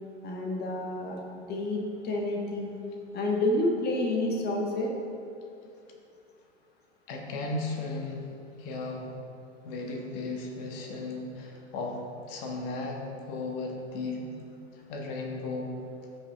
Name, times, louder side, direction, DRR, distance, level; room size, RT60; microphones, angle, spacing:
voice 1, 0.2-1.2 1.5-2.7 3.1-4.9, left 1 dB, 30° left, 0 dB, 1.4 m, -29 dB
voice 2, 7.1-8.3 8.6-9.1 9.6-12.0 12.3-14.2 14.7-15.7, left 3 dB, 55° left, 0 dB, 1.5 m, -35 dB
15.0 x 5.6 x 3.5 m, 2.5 s
hypercardioid pair, 90°, 33 cm